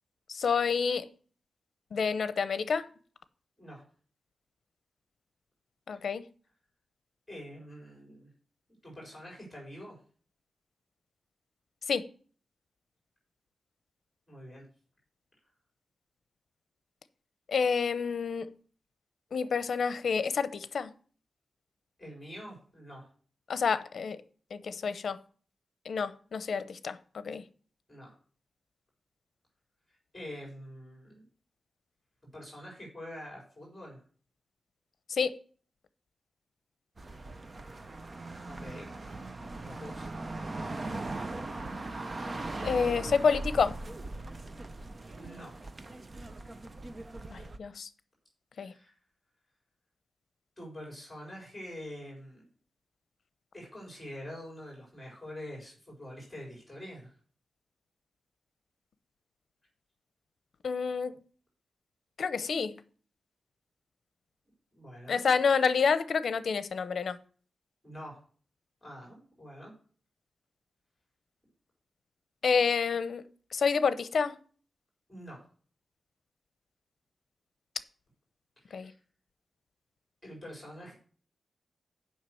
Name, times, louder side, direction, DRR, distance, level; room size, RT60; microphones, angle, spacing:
voice 1, 0.3-1.1 1.9-2.9 5.9-6.2 11.9-12.1 17.5-18.5 19.3-20.9 23.5-24.2 24.5-25.2 25.9-27.4 35.1-35.4 42.6-43.8 47.3-47.9 48.6-48.7 60.6-61.1 62.2-62.8 65.1-67.2 72.4-73.2 73.5-74.3 78.7-78.9, left 5 dB, 65° left, 14 dB, 0.7 m, -28 dB
voice 2, 7.3-8.3 8.8-10.0 14.3-14.6 22.0-23.1 27.9-28.1 29.9-31.3 32.3-34.0 38.5-38.9 39.6-40.1 45.1-45.6 48.5-49.0 50.6-52.5 53.5-57.2 64.7-65.2 67.8-68.2 68.8-69.7 75.1-75.4 78.6-78.9 80.2-81.0, equal, 10° left, -3 dB, 4.2 m, -45 dB
sound 1, 37.0-47.6, right 2 dB, 30° right, 0.6 m, -39 dB
7.4 x 5.7 x 7.6 m, 0.43 s
wide cardioid pair, 145°, 0 cm